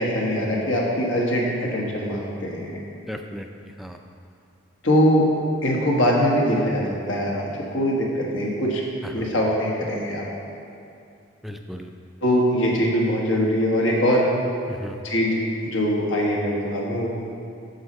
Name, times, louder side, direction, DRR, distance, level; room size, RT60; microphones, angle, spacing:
voice 1, 0.0-2.8 4.8-5.3 5.6-8.8 9.1-10.2 12.2-14.3 15.0-17.1, equal, 80° left, -2 dB, 1.4 m, -22 dB
voice 2, 3.1-4.0 9.0-9.3 11.4-11.9 14.7-15.0, equal, ahead, 4 dB, 0.3 m, -36 dB
8.1 x 4.3 x 6.6 m, 2.6 s
head